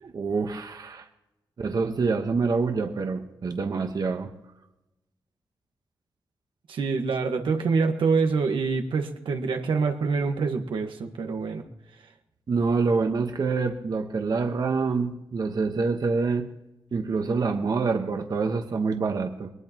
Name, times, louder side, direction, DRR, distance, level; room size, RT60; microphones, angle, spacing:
voice 1, 0.0-1.0 1.6-4.3 12.5-16.5 16.9-19.5, right 4 dB, 50° right, 5 dB, 1.2 m, -26 dB
voice 2, 6.7-11.7, right 4 dB, 90° right, 4 dB, 1.6 m, -26 dB
21.5 x 19.5 x 3.0 m, 0.95 s
wide cardioid pair, 110°, 8 cm